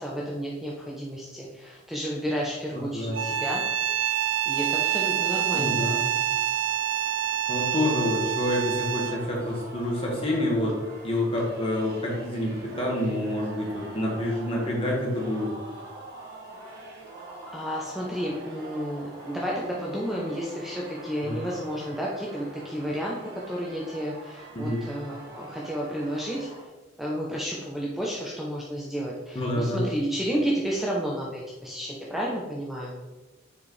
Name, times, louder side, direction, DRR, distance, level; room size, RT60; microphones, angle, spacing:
voice 1, 0.0-3.6 4.5-5.8 17.5-26.5 27.0-33.0, equal, ahead, -4 dB, 0.6 m, -31 dB
voice 2, 2.7-3.2 5.5-6.0 7.5-10.8 11.0-15.5 21.2-21.4 24.5-24.8 29.3-29.8, left 1 dB, 30° left, -3 dB, 1.7 m, -27 dB
sound 1, 3.1-9.3, right 11 dB, 70° right, 0.4 m, -27 dB
Singing, 9.1-26.6, right 2 dB, 55° right, 1.5 m, -44 dB
7.0 x 4.9 x 3.2 m, 1.2 s
head